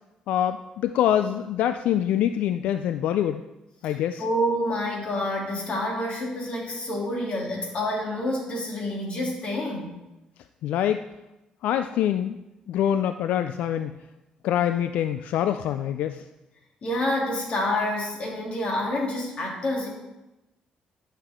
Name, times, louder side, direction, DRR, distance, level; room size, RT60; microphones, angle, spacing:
voice 1, 0.3-3.4 3.8-4.3 10.6-11.0 11.6-12.4 12.7-14.0 14.4-16.2, left 10 dB, 85° left, 10 dB, 0.3 m, -25 dB
voice 2, 4.2-9.9 16.8-19.9, left 1 dB, 50° left, -2 dB, 2.9 m, -28 dB
11.5 x 6.7 x 3.7 m, 0.98 s
cardioid pair, 105°, 2 cm